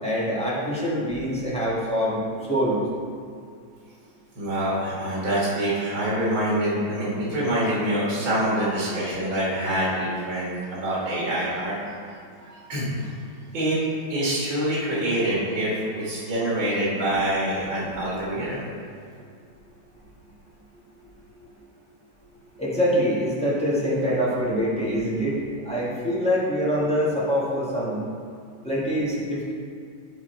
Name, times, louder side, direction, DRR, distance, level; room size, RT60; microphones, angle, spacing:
voice 1, 0.0-2.2 2.5-2.8 22.6-25.3 25.6-28.0 28.6-29.5, equal, 5° left, -7 dB, 1.3 m, -24 dB
voice 2, 4.4-11.7 12.4-13.1 13.5-13.8 14.1-18.7, right 1 dB, 90° right, -6 dB, 2.5 m, -25 dB
11.0 x 3.6 x 4.5 m, 2.2 s
omnidirectional pair, 2.1 m